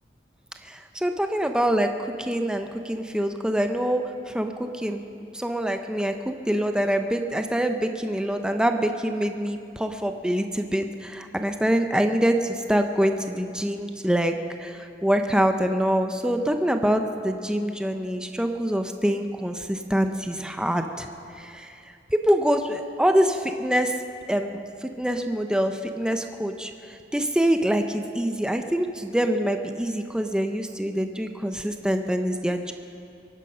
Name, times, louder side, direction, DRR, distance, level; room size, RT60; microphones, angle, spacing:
voice 1, 0.6-1.9 2.2-5.1 5.3-14.3 14.6-21.1 21.3-21.7 22.1-23.9 24.3-32.7, equal, 5° right, 6 dB, 0.7 m, -25 dB
23.5 x 9.6 x 5.6 m, 2.5 s
head